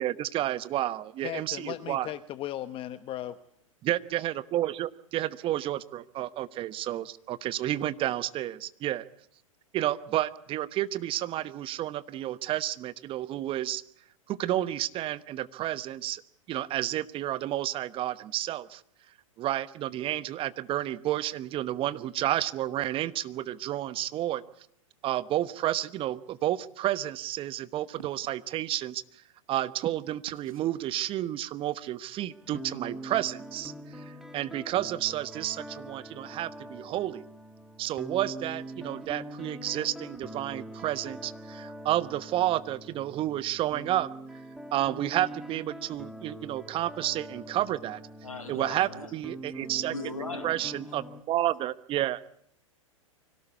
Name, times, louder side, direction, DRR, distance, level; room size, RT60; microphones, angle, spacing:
voice 1, 0.0-2.1 3.8-9.0 9.7-13.8 14.3-16.2 16.5-18.8 19.4-24.4 25.0-29.0 29.5-37.2 37.8-44.1 44.7-48.0 48.5-49.9 50.4-52.2, right 13 dB, 30° right, 17 dB, 1.1 m, -31 dB
voice 2, 1.2-3.4, left 13 dB, 30° left, 13 dB, 1.0 m, -36 dB
sound 1, 28.0-28.4 30.3-30.7, right 6 dB, 80° right, 1.3 m, -50 dB
sound 2, 32.3-51.2, right 1 dB, ahead, 1.8 m, -43 dB
voice 3, 48.2-49.1 49.5-50.5, left 3 dB, 85° left, 4 dB, 5.7 m, -39 dB
25.0 x 17.5 x 8.3 m, 0.68 s
hypercardioid pair, 100°, 17 cm